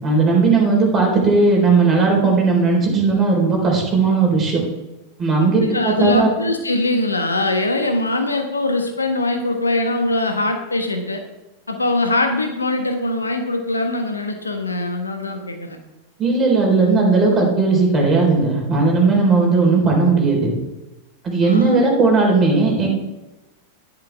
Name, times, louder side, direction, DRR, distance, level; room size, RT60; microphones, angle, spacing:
voice 1, 0.0-4.6 5.2-6.3 16.2-20.5 21.2-22.9, right 3 dB, 20° right, -1 dB, 4.2 m, -16 dB
voice 2, 5.4-11.2 11.7-15.8 21.4-21.8, left 2 dB, 80° left, 5 dB, 1.3 m, -22 dB
11.0 x 10.5 x 3.5 m, 1.0 s
figure-of-eight pair, 90°, 0 cm